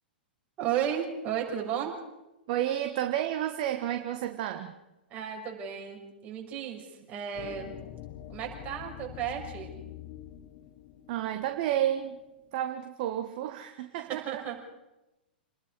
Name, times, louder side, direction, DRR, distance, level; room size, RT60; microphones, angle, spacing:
voice 1, 0.6-1.9 5.1-7.7 8.3-9.7 14.0-14.6, right 9 dB, 30° right, 0 dB, 5.9 m, -34 dB
voice 2, 2.5-4.7 11.1-12.2 12.5-14.4, right 11 dB, 45° right, 7 dB, 1.5 m, -31 dB
sound 1, 7.3-12.5, left 12 dB, 40° left, 1.6 m, -46 dB
28.5 x 20.0 x 5.0 m, 0.97 s
figure-of-eight pair, 100°, 5 cm